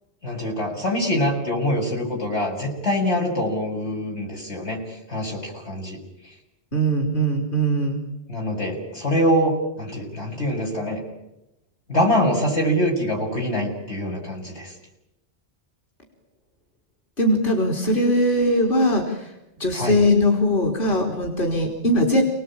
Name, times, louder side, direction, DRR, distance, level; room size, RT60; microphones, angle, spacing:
voice 1, 0.2-4.8 5.1-6.0 8.3-11.0 11.9-14.7 19.7-20.0, equal, 90° left, -1 dB, 8.1 m, -24 dB
voice 2, 6.7-8.0 17.2-19.3 19.6-22.2, equal, 50° left, 2 dB, 4.1 m, -20 dB
30.0 x 19.5 x 9.0 m, 0.89 s
omnidirectional pair, 1.1 m